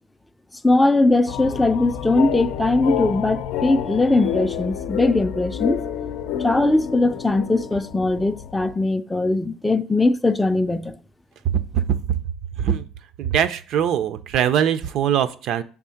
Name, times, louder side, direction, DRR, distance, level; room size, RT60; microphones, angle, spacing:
voice 1, 0.6-5.8 6.4-11.0, left 2 dB, 5° left, 0.3 m, -20 dB
sound 1, 1.3-8.7, left 9 dB, 80° left, 0.5 m, -29 dB
voice 2, 13.2-15.6, right 9 dB, 55° right, 0.4 m, -21 dB
6.9 x 3.6 x 5.6 m
cardioid pair, 160°, 0 cm